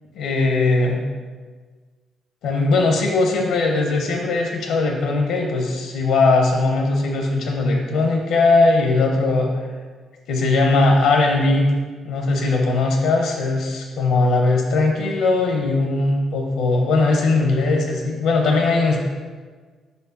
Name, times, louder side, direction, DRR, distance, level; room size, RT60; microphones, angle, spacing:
voice 1, 0.1-1.0 2.4-9.7 10.3-11.7 12.0-19.0, left 3 dB, 90° left, 2 dB, 0.7 m, -19 dB
5.1 x 4.5 x 4.0 m, 1.5 s
cardioid pair, 90°, 0 cm